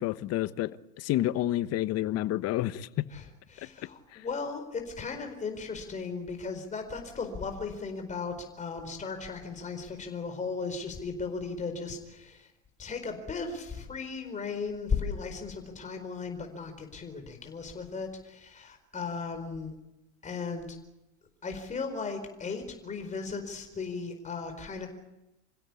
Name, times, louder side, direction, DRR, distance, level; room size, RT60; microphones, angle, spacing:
voice 1, 0.0-3.1, left 14 dB, 40° left, 1.2 m, -29 dB
voice 2, 3.1-12.5 12.8-19.7 20.2-20.8 21.4-24.9, left 4 dB, 20° left, 4.5 m, -36 dB
28.0 x 16.5 x 8.5 m
hypercardioid pair, 115°, 39 cm